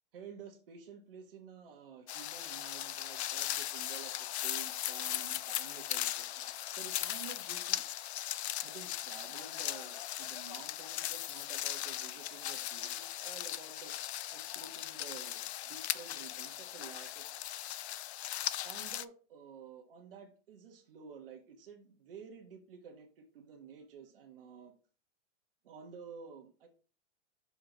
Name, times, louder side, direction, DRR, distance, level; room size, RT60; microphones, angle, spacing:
voice 1, 0.1-7.8 8.6-13.9 14.3-17.3 18.6-24.7 25.6-26.7, right 6 dB, 50° right, 2 dB, 1.4 m, -51 dB
sound 1, 2.1-19.1, left 12 dB, 65° left, 0.5 m, -38 dB
6.1 x 5.0 x 3.9 m, 0.37 s
supercardioid pair, 180°, 36 cm